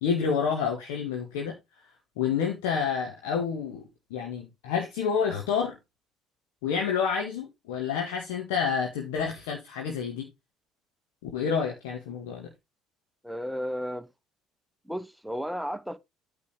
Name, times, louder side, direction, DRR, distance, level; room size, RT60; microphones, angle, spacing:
voice 1, 0.0-1.5 2.2-3.8 4.1-5.8 6.6-10.3 11.2-12.5, left 6 dB, 70° left, 1.8 m, -29 dB
voice 2, 13.2-14.1 14.9-16.0, equal, 5° right, 0.9 m, -33 dB
8.7 x 4.8 x 4.6 m
figure-of-eight pair, 55°, 0 cm